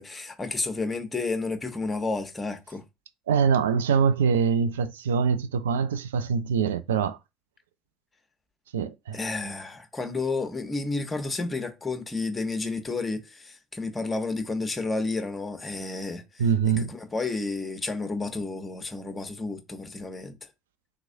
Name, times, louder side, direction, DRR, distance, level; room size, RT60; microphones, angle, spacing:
voice 1, 0.0-2.8 9.1-16.4 16.8-20.3, left 3 dB, 20° left, 1.0 m, -31 dB
voice 2, 3.3-7.2 8.7-9.2 9.4-9.5 16.4-16.9, right 6 dB, 80° right, 0.4 m, -24 dB
3.6 x 3.0 x 2.7 m
hypercardioid pair, 65°, 0 cm